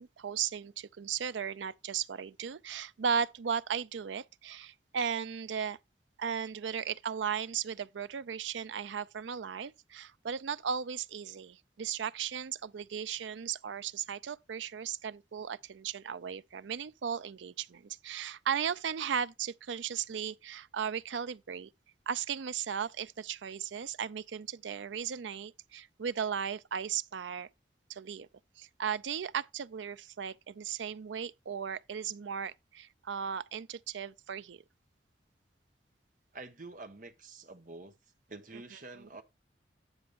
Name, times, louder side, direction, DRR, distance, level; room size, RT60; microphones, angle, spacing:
voice 1, 0.0-5.8 6.2-21.7 22.1-27.5 27.9-28.3 28.6-34.6 38.5-38.6 39.0-39.1, right 7 dB, 85° right, 0.5 m, -36 dB
voice 2, 36.3-38.0 38.3-39.2, right 3 dB, 45° right, 1.3 m, -47 dB
9.7 x 3.4 x 6.9 m
head